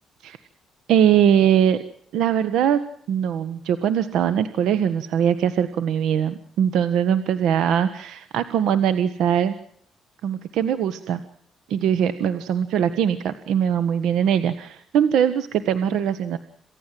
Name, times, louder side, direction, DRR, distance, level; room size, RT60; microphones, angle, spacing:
voice 1, 0.9-1.8 2.1-2.8 3.1-9.5 10.2-11.2 11.7-16.4, right 9 dB, 85° right, 12 dB, 1.5 m, -21 dB
28.0 x 16.5 x 7.8 m, 0.66 s
cardioid pair, 90°, 0 cm